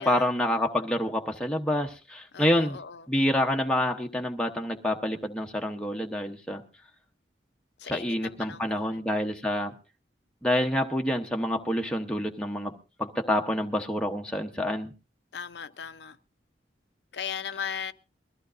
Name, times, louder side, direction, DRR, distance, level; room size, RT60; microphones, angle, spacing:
voice 1, 0.0-2.8 3.1-6.6 7.8-9.7 10.4-12.7 13.0-14.9, left 1 dB, 5° left, 0.8 m, -27 dB
voice 2, 2.3-3.1 7.8-9.1 15.3-16.2 17.1-17.9, left 7 dB, 70° left, 0.6 m, -37 dB
22.0 x 14.5 x 2.5 m
head